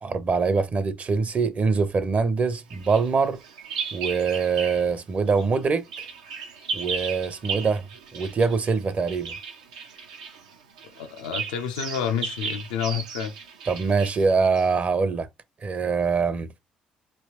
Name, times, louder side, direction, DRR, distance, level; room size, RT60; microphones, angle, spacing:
voice 1, 0.0-3.4 3.9-5.9 6.7-7.9 8.1-9.3 13.7-15.3 15.6-16.5, right 4 dB, 40° right, 0.6 m, -24 dB
Bird vocalization bird call bird song, 2.7-5.0 5.3-14.8, right 6 dB, 80° right, 0.6 m, -36 dB
voice 2, 11.0-13.3, left 8 dB, 75° left, 0.5 m, -29 dB
3.2 x 2.8 x 2.8 m
hypercardioid pair, 50°, 4 cm